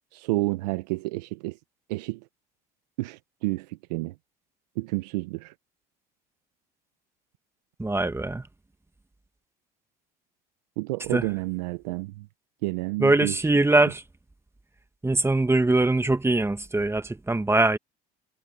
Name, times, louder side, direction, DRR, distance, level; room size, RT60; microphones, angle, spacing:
voice 1, 0.1-1.6 1.9-2.2 3.0-4.1 4.8-5.5 10.8-12.3 12.6-13.5, right 21 dB, 85° right, 0.8 m, -30 dB
voice 2, 7.8-8.4 11.1-11.2 13.0-14.0 15.0-17.8, right 2 dB, 10° right, 1.6 m, -22 dB
hypercardioid pair, 70°, 21 cm